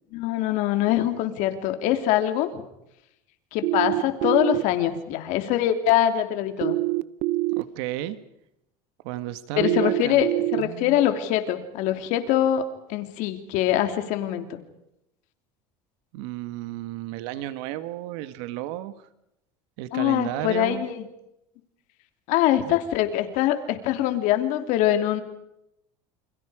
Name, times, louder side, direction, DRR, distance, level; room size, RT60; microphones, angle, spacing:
voice 1, 0.1-2.6 3.5-6.8 9.6-12.6 12.9-14.6 19.9-21.0 22.3-25.2, left 12 dB, 65° left, 7 dB, 3.1 m, -23 dB
sound 1, 3.6-4.6 6.6-7.6 9.6-10.6, right 20 dB, 55° right, 0.8 m, -24 dB
voice 2, 7.6-8.2 9.0-10.3 10.6-11.0 16.1-18.9 19.8-20.8 22.6-22.8, right 14 dB, 75° right, 12 dB, 1.6 m, -33 dB
29.5 x 27.5 x 5.0 m, 0.83 s
cardioid pair, 140°, 14 cm